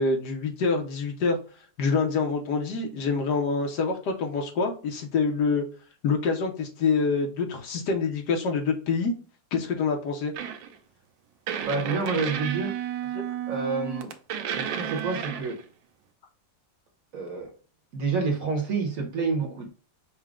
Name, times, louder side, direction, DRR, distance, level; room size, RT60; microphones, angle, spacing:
voice 1, 0.0-1.4 1.8-5.6 6.0-9.1 9.5-10.3, left 4 dB, 70° left, 1.4 m, -26 dB
sound 1, 10.3-10.8 11.5-15.6, right 9 dB, 85° right, 1.4 m, -32 dB
voice 2, 11.7-12.8 13.5-14.1 14.5-15.6 17.1-17.5 17.9-19.7, right 4 dB, 55° right, 1.2 m, -28 dB
6.1 x 2.2 x 3.5 m
omnidirectional pair, 2.0 m